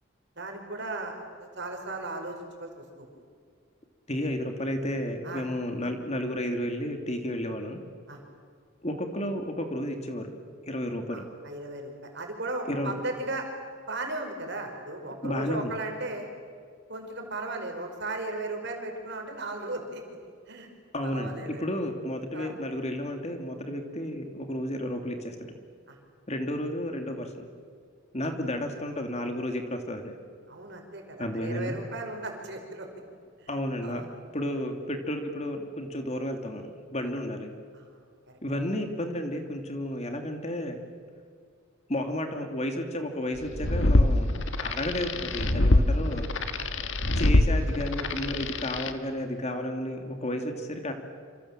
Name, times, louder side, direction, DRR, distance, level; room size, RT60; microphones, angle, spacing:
voice 1, 0.4-3.1 5.2-5.5 8.1-8.2 11.1-13.5 13.9-16.3 16.9-20.0 20.5-20.7 21.0-21.6 22.3-22.6 25.9-26.0 30.5-32.9 33.4-34.2 37.0-37.1 37.7-38.0 38.3-38.4 46.6-46.7, right 2 dB, 55° right, 3 dB, 5.2 m, -36 dB
voice 2, 4.1-7.8 8.8-10.3 10.7-11.2 12.7-12.9 15.2-15.7 20.9-25.5 26.3-27.5 28.1-30.1 31.2-31.8 33.5-34.0 34.3-37.5 38.4-40.8 41.9-44.3 44.6-46.3 47.2-50.9, left 1 dB, 30° left, 5 dB, 2.6 m, -32 dB
sound 1, 43.4-48.9, left 1 dB, 65° left, 1.6 m, -24 dB
27.5 x 26.5 x 7.6 m, 2.1 s
head